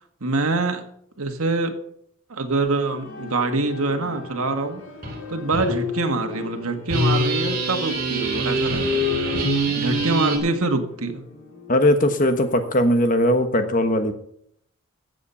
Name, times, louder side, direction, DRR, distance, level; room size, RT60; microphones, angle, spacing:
voice 1, 0.2-0.8 1.2-1.7 2.3-4.8 5.3-9.1 9.7-11.2, right 3 dB, 80° right, 5 dB, 1.7 m, -25 dB
sound 1, 2.8-12.8, left 7 dB, 75° left, 3.2 m, -38 dB
sound 2, 5.0-5.2 5.5-5.7 6.9-10.4, right 1 dB, 45° right, 3.4 m, -23 dB
voice 2, 11.7-14.1, left 1 dB, 35° left, 8 dB, 1.3 m, -19 dB
15.0 x 7.9 x 5.6 m, 0.70 s
head